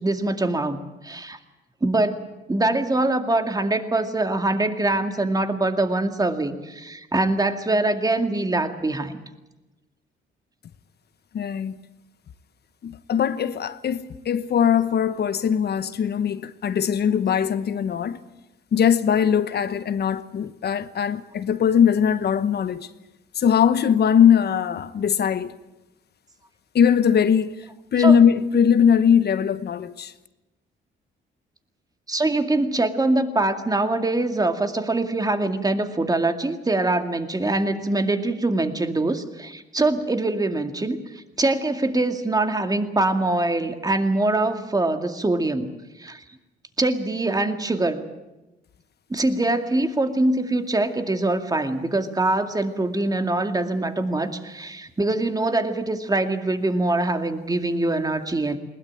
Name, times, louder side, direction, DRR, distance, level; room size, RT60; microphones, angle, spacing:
voice 1, 0.0-1.4 1.8-9.1 28.0-28.2 32.1-45.7 46.0-46.2 46.8-48.1 49.1-58.6, right 2 dB, 20° right, 2.3 m, -23 dB
voice 2, 11.3-11.8 12.8-18.2 18.7-22.9 23.4-25.5 26.7-27.5 27.9-30.1, left 8 dB, 55° left, 1.1 m, -20 dB
21.0 x 20.0 x 9.0 m
cardioid pair, 90°, 20 cm